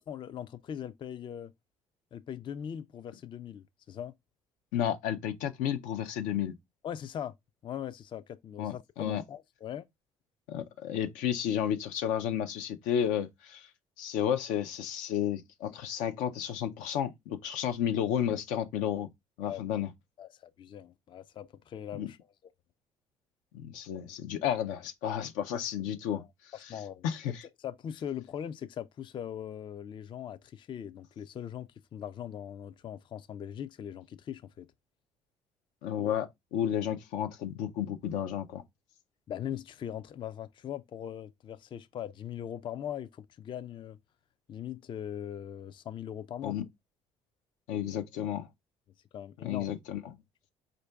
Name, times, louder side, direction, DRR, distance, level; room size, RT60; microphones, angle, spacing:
voice 1, 0.0-1.5 2.1-4.1 6.8-7.3 7.6-9.9 19.4-19.6 20.2-22.2 26.2-26.3 26.7-27.1 27.6-34.7 39.3-44.0 44.5-46.6 49.1-49.7, left 9 dB, 40° left, 0.3 m, -40 dB
voice 2, 4.7-6.6 8.6-9.2 10.5-13.7 14.0-19.1 19.4-19.9 21.9-22.1 23.5-26.7 27.0-27.4 35.8-38.6 46.4-46.6 47.7-48.5 49.4-50.0, left 10 dB, 85° left, 0.6 m, -32 dB
4.4 x 2.6 x 3.3 m
supercardioid pair, 80°, 13 cm